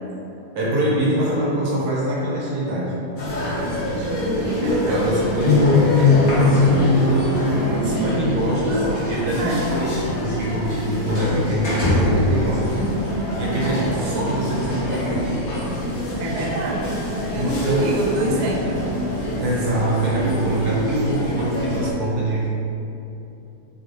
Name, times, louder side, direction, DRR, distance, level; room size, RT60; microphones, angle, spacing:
voice 1, 0.5-3.0 4.9-10.0 10.2-15.4 17.3-18.0 18.3-18.4 19.4-22.5, right 1 dB, 55° right, -6 dB, 1.7 m, -24 dB
sound 1, 3.2-21.9, left 2 dB, 70° left, 0.8 m, -23 dB
voice 2, 3.4-5.1 9.4-9.6 16.2-18.8, right 1 dB, 75° right, -4 dB, 1.2 m, -26 dB
9.4 x 3.9 x 3.2 m, 2.9 s
omnidirectional pair, 3.8 m